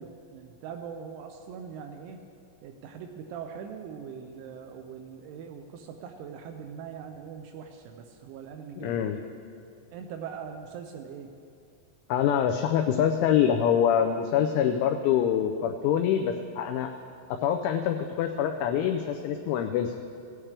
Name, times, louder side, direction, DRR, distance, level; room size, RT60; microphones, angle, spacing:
voice 1, 0.0-2.2 2.6-9.3 9.9-11.3, right 7 dB, 85° right, 5 dB, 2.8 m, -41 dB
voice 2, 8.8-9.2 12.1-16.9 17.4-19.9, left 9 dB, 90° left, 4 dB, 2.7 m, -25 dB
17.0 x 10.0 x 3.3 m, 2.4 s
omnidirectional pair, 6.0 m